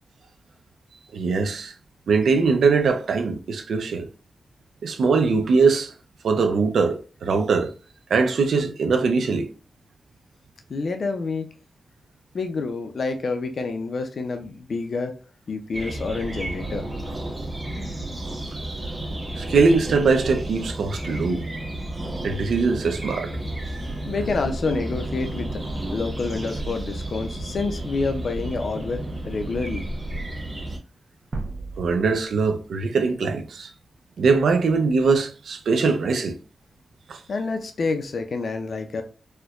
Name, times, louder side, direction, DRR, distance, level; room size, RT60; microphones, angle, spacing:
voice 1, 1.1-1.7 2.1-4.1 4.8-5.9 6.2-7.7 8.1-9.5 18.2-18.3 19.4-21.5 22.2-23.3 31.8-33.7 34.2-36.4 37.1-37.2, right 4 dB, 90° right, 0.5 m, -21 dB
voice 2, 10.7-11.5 12.3-15.1 15.5-16.8 24.0-25.6 25.9-29.0 29.3-29.8 37.3-39.0, left 4 dB, 60° left, 0.5 m, -28 dB
sound 1, 15.7-30.8, right 1 dB, 25° right, 1.1 m, -32 dB
sound 2, 31.3-34.3, right 3 dB, 45° right, 0.6 m, -37 dB
4.3 x 2.2 x 2.4 m
wide cardioid pair, 125°, 0 cm